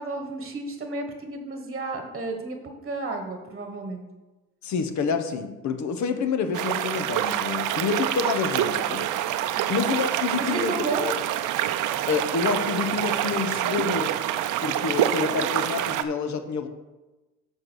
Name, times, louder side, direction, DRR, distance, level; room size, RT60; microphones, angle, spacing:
voice 1, 0.0-4.0 9.5-9.7 10.4-11.1, right 3 dB, 30° right, 4 dB, 1.2 m, -32 dB
voice 2, 4.6-9.1 9.7-10.7 12.1-14.1 14.6-16.7, left 5 dB, 70° left, 8 dB, 0.9 m, -28 dB
sound 1, 6.5-16.0, right 12 dB, 85° right, 0.5 m, -26 dB
7.4 x 4.7 x 6.2 m, 1.1 s
cardioid pair, 90°, 30 cm